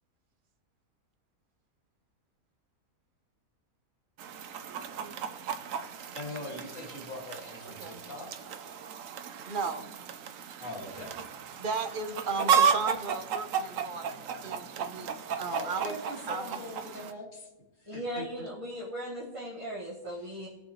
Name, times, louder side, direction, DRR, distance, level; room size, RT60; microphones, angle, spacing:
Chicken rooster, 4.2-17.1, right 7 dB, 65° right, 1.1 m, -33 dB
voice 1, 6.1-8.4 10.6-11.2 15.5-17.5 17.8-18.2 20.1-20.4, left 2 dB, 60° left, -1 dB, 2.6 m, -41 dB
voice 2, 9.4-9.9 11.6-14.1 14.4-16.0 16.3-16.6, right 4 dB, 45° right, 8 dB, 0.8 m, -35 dB
voice 3, 17.9-20.5, equal, 20° right, -7 dB, 1.7 m, -38 dB
18.0 x 6.9 x 3.1 m, 1.1 s
omnidirectional pair, 1.5 m